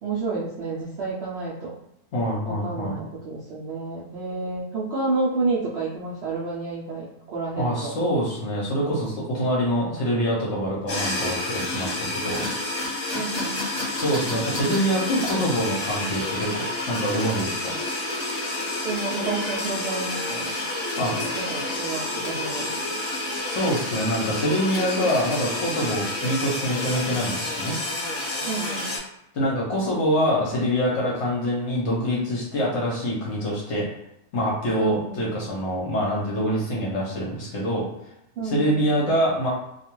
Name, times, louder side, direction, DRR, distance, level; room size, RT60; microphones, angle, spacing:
voice 1, 0.0-1.7 2.4-7.9 13.1-13.5 18.8-20.5 21.1-22.9 28.4-28.9 34.8-35.4 38.4-39.0, right 3 dB, 70° right, -6 dB, 0.6 m, -30 dB
voice 2, 2.1-3.0 7.6-12.4 13.9-17.8 21.0-21.1 23.4-27.8 29.3-33.9 34.3-37.9 38.4-39.5, equal, 60° left, -4 dB, 0.8 m, -25 dB
sound 1, 10.9-29.0, left 2 dB, 30° left, 0.8 m, -29 dB
2.3 x 2.3 x 2.9 m, 0.82 s
omnidirectional pair, 1.6 m